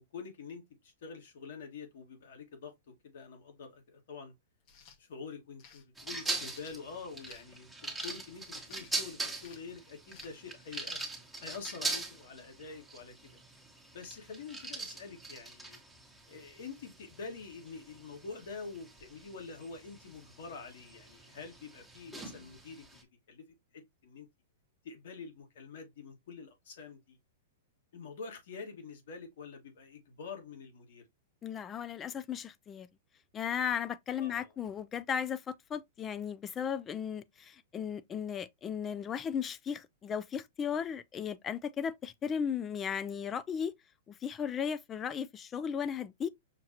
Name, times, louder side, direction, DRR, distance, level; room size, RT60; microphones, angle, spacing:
voice 1, 0.0-4.3 5.0-11.0 11.4-13.4 13.9-15.8 16.3-23.5 23.7-24.3 24.8-27.2 27.9-31.0 34.2-34.5, left 5 dB, 65° left, 1.8 m, -46 dB
sound 1, 4.6-5.0 5.6-5.8 6.5-7.5 7.9-8.3 8.7-9.0 9.4-9.7 10.1-10.3, left 7 dB, 45° left, 1.2 m, -56 dB
sound 2, 6.0-23.0, right 3 dB, 5° right, 1.2 m, -42 dB
voice 2, 31.4-32.9 33.3-43.7 44.1-46.3, left 7 dB, 25° left, 0.4 m, -36 dB
5.8 x 2.4 x 2.8 m
hypercardioid pair, 125°, 0 cm